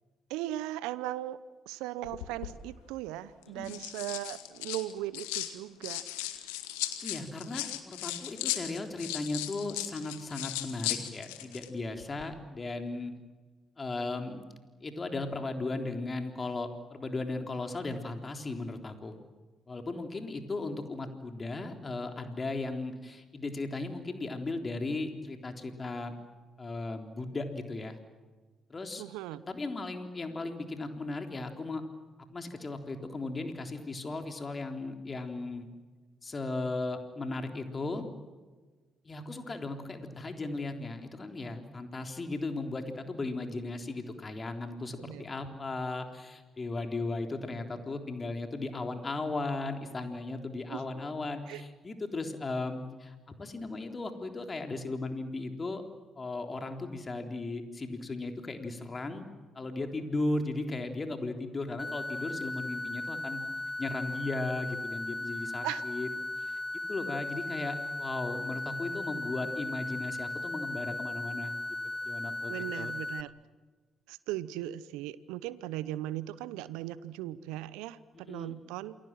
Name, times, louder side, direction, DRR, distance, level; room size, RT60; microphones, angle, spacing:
voice 1, 0.3-1.4 1.7-6.0 29.0-29.4 45.0-45.2 50.7-50.8 51.5-51.6 65.6-65.9 72.5-73.3 74.1-79.0, right 14 dB, 75° right, 17 dB, 0.9 m, -38 dB
sound 1, 2.0-2.5 3.4-5.5 5.8-11.7 12.0-12.2, left 15 dB, 80° left, 1.9 m, -37 dB
voice 2, 7.0-13.1 13.8-19.2 19.7-26.1 26.6-28.0 28.7-29.0 29.5-31.8 32.3-35.7 36.2-38.0 39.0-55.8 56.2-59.3 59.6-63.4 63.8-66.1 66.4-66.6 66.9-71.5 72.0-72.9 78.2-78.6, left 2 dB, 35° left, 5 dB, 3.7 m, -36 dB
sound 2, 61.8-73.2, left 2 dB, 15° left, 2.0 m, -37 dB
28.5 x 23.0 x 7.6 m, 1.3 s
hypercardioid pair, 45°, 0 cm